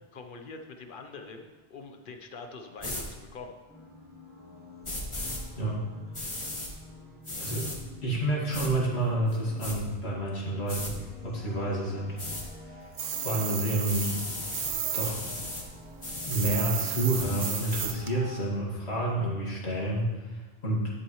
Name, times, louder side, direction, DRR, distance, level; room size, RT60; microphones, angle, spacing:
voice 1, 0.0-3.6, left 4 dB, 55° left, 5 dB, 1.0 m, -44 dB
sound 1, 2.8-3.0 4.8-5.4 6.1-6.7 7.2-7.8 8.5-8.7 9.3-9.8 10.7-10.9 12.2-12.4 13.8-14.7 15.0-15.6 16.0-16.5 17.1-17.9, left 1 dB, 25° left, 1.6 m, -36 dB
sound 2, 3.7-18.4, left 1 dB, 10° right, 1.2 m, -49 dB
voice 2, 8.0-12.2 12.6-12.8 13.1-14.1 14.9-15.2 16.3-20.9, right 1 dB, 75° left, -4 dB, 2.4 m, -29 dB
sound 3, 13.0-15.1 15.4-18.1, right 8 dB, 80° right, 1.0 m, -33 dB
11.0 x 8.6 x 3.1 m, 1.2 s
omnidirectional pair, 1.1 m